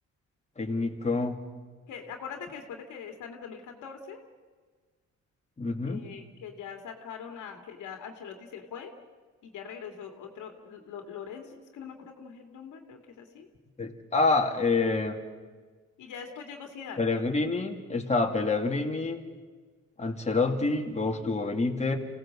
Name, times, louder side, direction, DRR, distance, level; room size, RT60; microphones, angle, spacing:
voice 1, 0.6-1.4 5.6-6.1 13.8-15.2 17.0-19.2 20.0-22.0, left 3 dB, 20° left, 2 dB, 2.7 m, -27 dB
voice 2, 1.9-4.2 5.9-8.9 9.4-13.5 16.0-17.0, left 7 dB, 85° left, 4 dB, 2.5 m, -42 dB
26.5 x 17.5 x 7.6 m, 1.5 s
cardioid pair, 90°, 30 cm